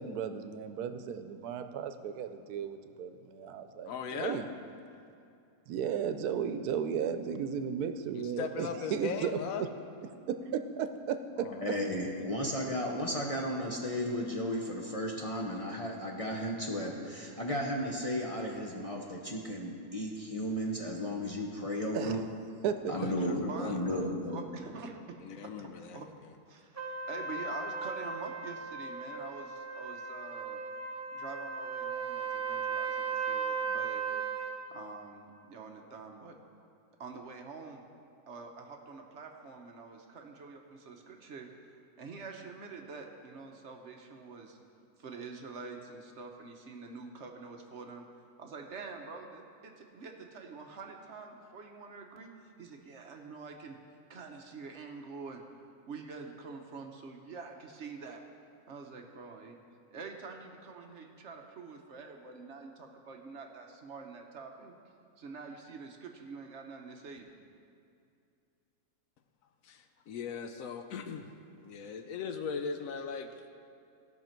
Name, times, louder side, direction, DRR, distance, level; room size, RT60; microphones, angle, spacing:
voice 1, 0.0-4.5 5.7-9.4 10.3-11.5 21.9-22.2 22.6-22.8, right 7 dB, 85° right, 9 dB, 1.1 m, -35 dB
voice 2, 3.9-4.4 8.1-9.6 11.4-11.7 22.9-23.8 25.2-26.0 69.6-71.3 71.6-73.5, left 5 dB, 70° left, 7 dB, 1.0 m, -39 dB
voice 3, 11.6-22.2 22.9-24.4, equal, 30° left, -1 dB, 0.7 m, -34 dB
voice 4, 23.4-24.9 25.3-26.1 26.5-30.6 31.1-34.3 34.7-36.3 37.0-37.8 38.3-41.5 42.0-44.6 45.0-48.0 48.4-53.8 54.1-55.4 55.9-58.2 58.7-59.6 59.9-64.7 65.2-67.3, right 4 dB, 55° right, 3 dB, 1.0 m, -46 dB
Trumpet, 26.8-34.6, right 5 dB, 15° right, 0.6 m, -36 dB
16.5 x 5.8 x 4.5 m, 2.5 s
omnidirectional pair, 1.6 m